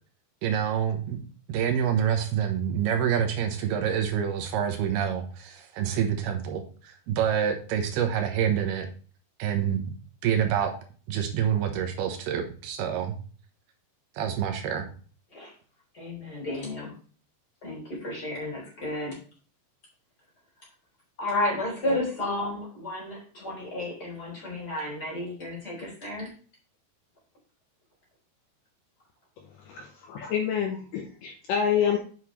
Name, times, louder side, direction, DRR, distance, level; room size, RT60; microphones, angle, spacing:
voice 1, 0.4-1.2 1.5-8.9 9.4-9.8 10.2-10.7 11.1-13.1 14.2-14.8, right 8 dB, 80° right, 5 dB, 3.0 m, -27 dB
voice 2, 15.9-16.9 17.6-19.2 21.2-26.3, left 1 dB, 25° left, -2 dB, 3.8 m, -32 dB
voice 3, 29.7-32.0, left 8 dB, 75° left, 3 dB, 2.2 m, -27 dB
8.1 x 7.1 x 3.2 m, 0.40 s
omnidirectional pair, 4.6 m